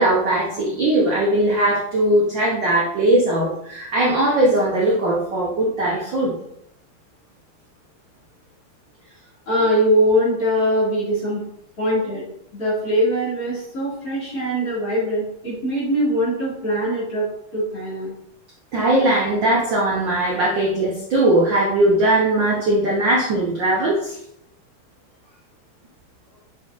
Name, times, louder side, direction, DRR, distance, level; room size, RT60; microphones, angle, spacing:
voice 1, 0.0-6.3 18.7-24.2, right 1 dB, 65° right, -4 dB, 1.1 m, -19 dB
voice 2, 9.5-11.4 11.8-12.2 12.5-17.3 17.5-18.1, equal, 30° left, -8 dB, 2.5 m, -21 dB
7.1 x 5.9 x 2.5 m, 0.74 s
omnidirectional pair, 3.5 m